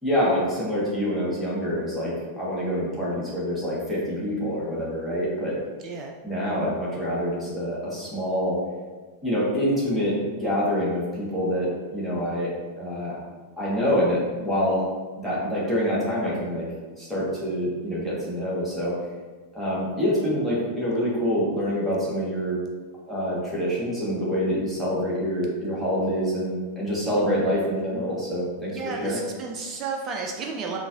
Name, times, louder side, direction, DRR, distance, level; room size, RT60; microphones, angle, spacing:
voice 1, 0.0-5.6 6.2-8.6 9.2-12.5 12.8-13.2 13.6-14.9 15.2-16.7 17.0-19.0 19.5-22.6 23.1-29.2, equal, 5° right, -9 dB, 1.4 m, -26 dB
voice 2, 28.7-30.8, right 4 dB, 30° right, 1 dB, 0.4 m, -32 dB
4.6 x 2.5 x 2.5 m, 1.3 s
figure-of-eight pair, 90°, 0 cm